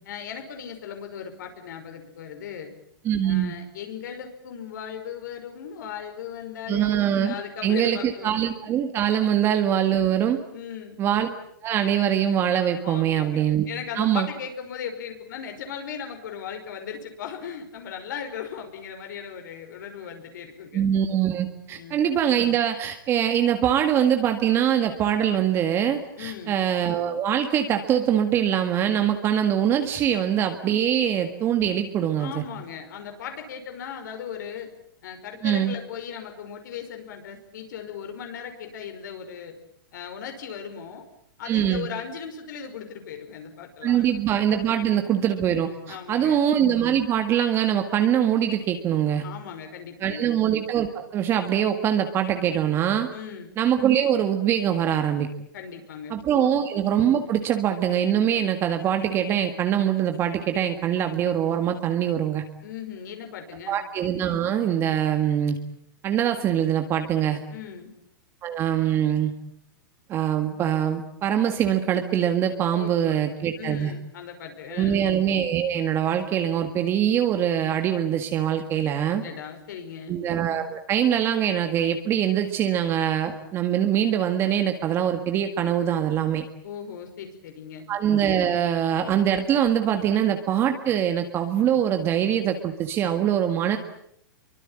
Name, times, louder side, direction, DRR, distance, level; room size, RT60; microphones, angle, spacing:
voice 1, 0.1-2.7 3.2-6.9 7.2-8.3 10.5-11.0 12.8-20.9 21.7-22.0 26.2-26.5 32.2-34.7 35.0-39.5 39.9-41.0 41.4-44.0 44.7-44.9 45.9-46.4 49.2-50.3 53.1-53.5 55.5-56.5 62.6-63.8 67.5-67.9 72.7-73.3 73.6-75.0 79.1-80.1 86.6-87.9, left 8 dB, 60° left, 5 dB, 5.5 m, -37 dB
voice 2, 3.0-3.5 6.7-7.3 7.6-10.4 11.0-11.3 11.6-13.7 14.0-14.3 20.7-32.4 35.4-35.7 41.4-41.9 43.8-49.2 50.0-53.1 53.6-55.3 56.1-62.4 63.7-65.6 66.0-67.4 68.4-69.3 70.1-73.9 74.7-79.2 80.1-86.4 87.9-93.8, right 9 dB, 20° right, 6 dB, 1.8 m, -23 dB
26.0 x 24.0 x 8.9 m, 0.70 s
hypercardioid pair, 160°, 11 cm